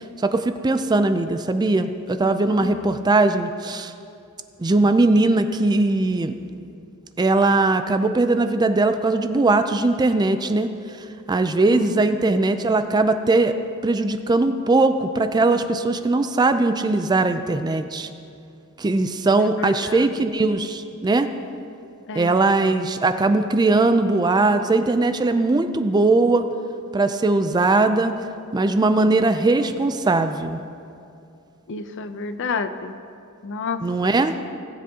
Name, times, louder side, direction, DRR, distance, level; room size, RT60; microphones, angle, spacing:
voice 1, 0.2-3.9 4.6-6.3 7.2-10.7 11.3-13.5 13.8-18.1 18.8-21.3 22.1-26.5 26.9-28.1 28.5-30.6 33.8-34.3, right 2 dB, 20° right, 9 dB, 0.4 m, -20 dB
voice 2, 2.6-3.0 11.7-12.6 19.4-20.1 22.1-22.4 31.7-32.9 33.4-34.1, left 4 dB, 60° left, 10 dB, 0.5 m, -31 dB
19.0 x 7.6 x 2.8 m, 2.5 s
head